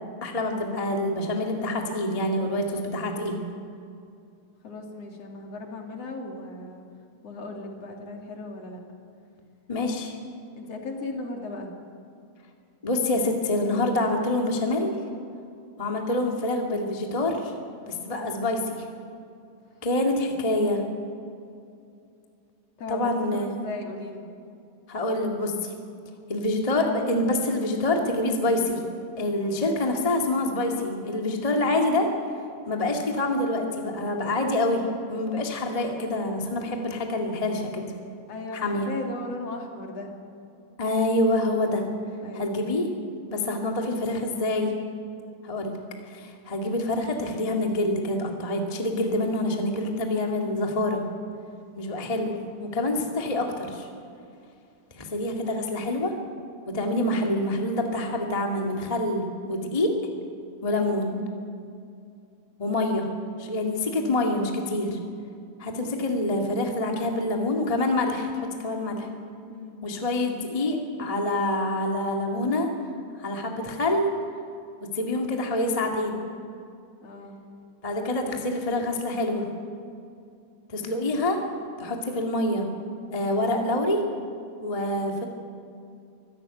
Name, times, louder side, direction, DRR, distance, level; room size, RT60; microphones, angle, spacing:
voice 1, 0.2-3.4 9.7-10.2 12.8-14.9 15.8-17.5 17.9-18.8 19.8-20.8 22.9-23.5 24.9-25.7 26.3-28.8 29.2-32.1 32.7-34.8 35.1-37.8 38.5-38.9 40.8-41.8 42.3-42.9 43.3-44.7 45.4-45.7 46.1-51.0 51.7-53.9 54.9-56.1 56.7-59.9 60.6-61.2 62.6-63.1 63.4-65.0 65.6-69.1 69.8-72.7 73.2-74.1 74.9-76.2 77.8-79.4 80.7-81.4 81.8-82.7 83.1-84.0 84.6-85.2, left 1 dB, 20° left, 2 dB, 0.9 m, -26 dB
voice 2, 4.6-6.9 7.2-8.8 10.6-11.7 22.8-24.3 38.3-40.1 42.2-42.6 69.5-69.8 77.0-77.4, left 2 dB, 45° left, 2 dB, 3.0 m, -37 dB
24.5 x 14.0 x 9.1 m, 2.5 s
omnidirectional pair, 4.4 m